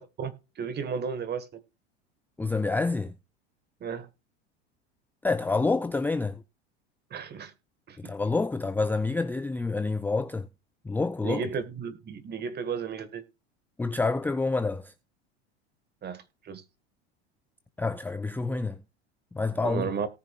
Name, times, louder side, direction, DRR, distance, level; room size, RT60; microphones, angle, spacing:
voice 1, 0.0-1.6 3.8-4.1 7.1-7.5 7.9-8.1 11.2-13.2 16.0-16.6 19.6-20.1, right 6 dB, 30° right, 1.8 m, -34 dB
voice 2, 2.4-3.1 5.2-6.4 8.0-10.5 10.8-11.4 13.8-14.9 17.8-18.8 19.3-19.9, left 3 dB, 5° left, 0.4 m, -28 dB
18.0 x 6.6 x 2.5 m
hypercardioid pair, 100°, 33 cm